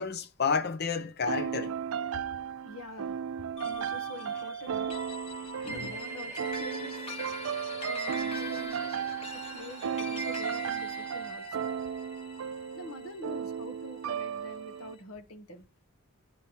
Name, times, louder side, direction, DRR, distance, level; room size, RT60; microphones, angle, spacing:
voice 1, 0.0-1.8 5.6-5.9 7.5-7.6, left 5 dB, 50° left, 0.7 m, -31 dB
sound 1, 1.3-15.0, right 7 dB, 70° right, 0.4 m, -35 dB
voice 2, 2.6-5.0 5.3-7.0 7.9-8.9 9.3-11.7 12.7-15.6, left 2 dB, 75° left, 1.2 m, -46 dB
sound 2, 3.6-14.2, equal, 25° left, 1.2 m, -42 dB
Random timestretch, 5.7-10.7, right 2 dB, 10° right, 1.6 m, -51 dB
10.0 x 4.5 x 4.7 m
head